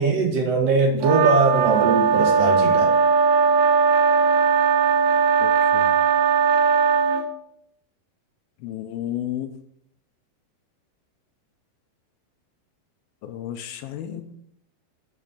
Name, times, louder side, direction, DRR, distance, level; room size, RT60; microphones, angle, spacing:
voice 1, 0.0-2.9, right 3 dB, 85° right, 2 dB, 1.4 m, -21 dB
sound 1, 1.0-7.2, right 6 dB, 70° right, 2.3 m, -19 dB
voice 2, 5.4-5.9 8.6-9.5 13.2-14.4, left 11 dB, 80° left, 8 dB, 2.4 m, -32 dB
8.9 x 5.4 x 6.9 m, 0.73 s
omnidirectional pair, 4.6 m